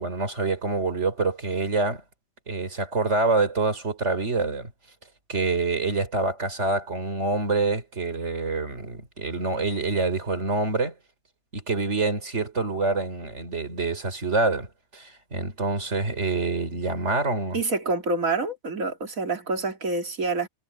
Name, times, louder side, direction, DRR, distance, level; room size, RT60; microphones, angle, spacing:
voice 1, 0.0-2.0 2.5-4.7 5.3-10.9 11.5-14.7 14.9-17.6, right 3 dB, 55° right, 3.9 m, -26 dB
voice 2, 17.5-20.5, right 3 dB, 75° right, 3.3 m, -27 dB
omnidirectional pair, 1.5 m